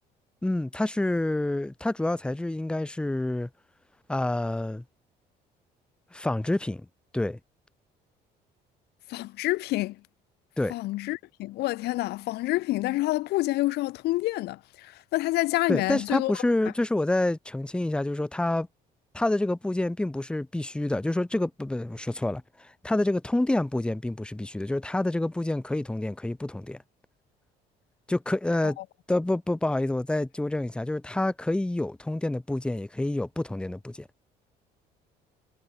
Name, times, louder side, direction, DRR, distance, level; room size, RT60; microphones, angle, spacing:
voice 1, 0.4-3.5 4.1-4.8 6.1-6.9 7.1-7.4 10.6-10.7 15.7-18.7 19.1-26.8 28.1-28.8 29.1-34.1, left 1 dB, 5° left, 0.7 m, -28 dB
voice 2, 9.1-10.0 10.7-16.3 28.6-28.8, left 18 dB, 75° left, 0.5 m, -28 dB
cardioid pair, 110°, 17 cm